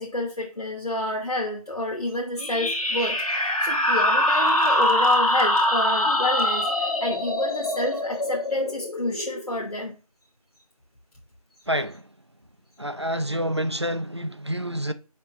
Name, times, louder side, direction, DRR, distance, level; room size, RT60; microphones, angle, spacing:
voice 1, 0.0-10.0, left 1 dB, 85° left, 1.6 m, -29 dB
sound 1, 2.4-9.6, left 1 dB, 65° left, 1.8 m, -23 dB
voice 2, 11.7-12.1 12.8-14.9, equal, 45° right, 0.5 m, -28 dB
5.3 x 3.7 x 5.5 m
figure-of-eight pair, 180°, 19 cm